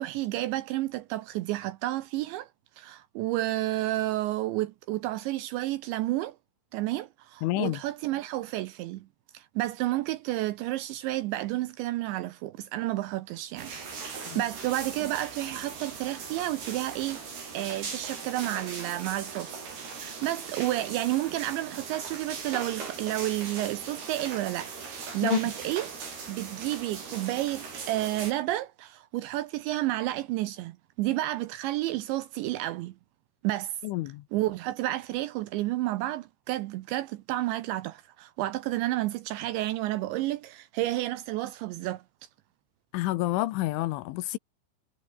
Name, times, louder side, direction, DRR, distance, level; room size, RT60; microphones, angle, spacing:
voice 1, 0.0-2.5 2.8-6.4 6.7-9.1 9.3-17.2 17.5-19.6 19.9-32.9 33.4-33.8 34.3-42.0, right 16 dB, 80° right, 2.7 m, -31 dB
voice 2, 7.4-7.8 14.3-14.4 25.2-25.4 33.8-34.2 42.9-44.4, left 17 dB, 75° left, 3.2 m, -28 dB
sound 1, 13.6-28.3, right 5 dB, 50° right, 8.1 m, -39 dB
omnidirectional pair, 5.9 m